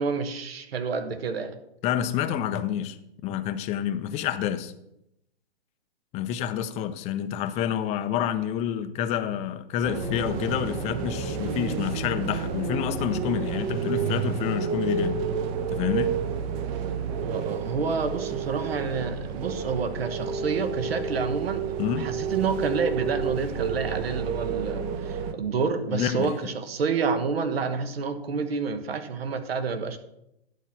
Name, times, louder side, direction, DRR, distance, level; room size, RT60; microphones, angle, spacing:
voice 1, 0.0-1.6 17.2-30.0, right 5 dB, 70° right, 1.3 m, -29 dB
voice 2, 1.8-3.0 3.2-4.7 6.1-15.1 15.7-16.2 21.8-22.1 25.9-26.3, left 10 dB, 20° left, 0.6 m, -28 dB
sound 1, 9.8-25.3, right 6 dB, 35° right, 0.9 m, -30 dB
11.0 x 4.5 x 6.1 m
hypercardioid pair, 120°, 31 cm